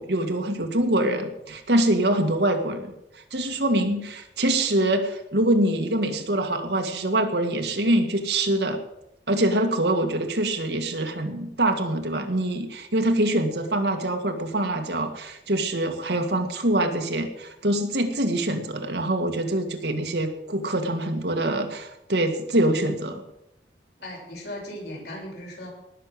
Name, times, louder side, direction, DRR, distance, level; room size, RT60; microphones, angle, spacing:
voice 1, 0.0-8.8 9.3-23.2, right 1 dB, 70° right, 5 dB, 1.9 m, -24 dB
voice 2, 24.0-25.7, left 1 dB, 70° left, -2 dB, 6.9 m, -37 dB
18.5 x 6.7 x 7.8 m, 0.86 s
head